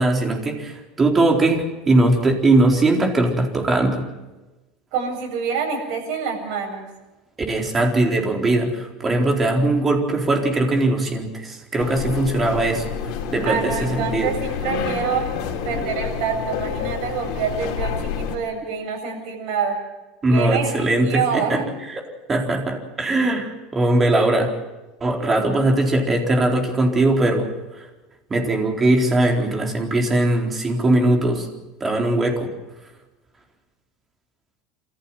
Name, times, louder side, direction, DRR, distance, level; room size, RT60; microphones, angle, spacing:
voice 1, 0.0-4.0 7.5-12.8 13.3-14.3 20.2-21.6 21.9-22.0 22.3-24.5 25.0-27.5 28.3-31.5 31.8-32.5, right 2 dB, 20° right, 2 dB, 4.1 m, -20 dB
voice 2, 4.9-6.9 13.4-15.2 15.6-19.8 20.3-21.7, right 6 dB, 60° right, 1 dB, 7.9 m, -26 dB
sound 1, 11.8-18.4, left 7 dB, 55° left, 3.8 m, -28 dB
27.5 x 14.5 x 7.6 m, 1.1 s
supercardioid pair, 140°, 0 cm